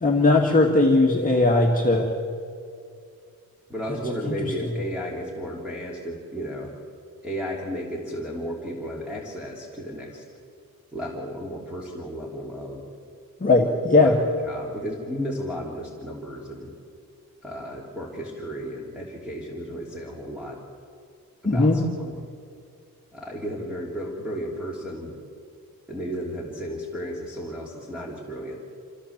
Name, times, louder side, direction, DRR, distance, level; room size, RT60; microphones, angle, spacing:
voice 1, 0.0-2.1 4.2-4.3 13.4-14.2 21.5-21.8, left 2 dB, 25° left, -1 dB, 1.9 m, -18 dB
voice 2, 3.7-6.7 7.2-10.2 10.9-12.8 14.0-14.2 14.4-16.7 17.4-20.6 21.5-22.2 23.1-25.1 25.9-28.6, equal, 5° right, -4 dB, 3.1 m, -33 dB
26.5 x 16.0 x 7.3 m, 2.3 s
wide cardioid pair, 140°, 34 cm